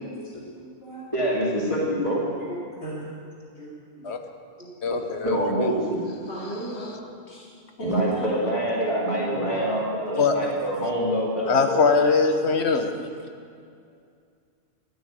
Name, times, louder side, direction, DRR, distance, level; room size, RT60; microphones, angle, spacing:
voice 1, 0.5-1.0 2.4-3.0 3.5-3.7 4.0-4.1 4.6-4.7 6.3-6.9 7.3-7.4 7.8-8.4 9.2-10.2 11.8-11.9, right 1 dB, 65° left, -7 dB, 3.0 m, -35 dB
voice 2, 1.1-2.2 5.2-6.0 7.8-11.8, right 1 dB, 30° left, -5 dB, 3.3 m, -25 dB
voice 3, 4.8-5.7 10.2-10.3 11.5-12.9, left 4 dB, 90° left, 6 dB, 1.4 m, -22 dB
13.0 x 9.3 x 8.8 m, 2.3 s
omnidirectional pair, 1.1 m